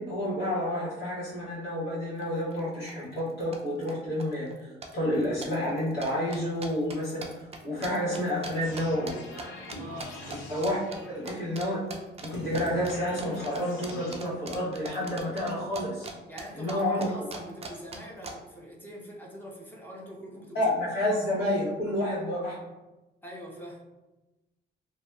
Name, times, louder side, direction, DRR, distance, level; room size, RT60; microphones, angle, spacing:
voice 1, 0.0-9.1 10.3-10.8 11.1-11.9 12.2-16.1 16.5-17.1 20.5-22.6, left 1 dB, 55° left, -8 dB, 1.2 m, -30 dB
sound 1, 2.2-2.3 2.5-2.9 3.2-3.9 4.2-4.6 4.8-9.4 9.7-10.4 10.6-11.0 11.3-11.6 11.9-16.1 16.4-18.3, right 4 dB, 30° right, 0.4 m, -40 dB
sound 2, 8.6-11.6 12.3-14.2, left 2 dB, 85° left, 0.5 m, -43 dB
voice 2, 9.8-10.2 16.3-20.7 21.1-21.2 23.2-23.8, equal, 10° left, -2 dB, 0.6 m, -43 dB
2.7 x 2.1 x 2.3 m, 1.1 s
cardioid pair, 90°, 20 cm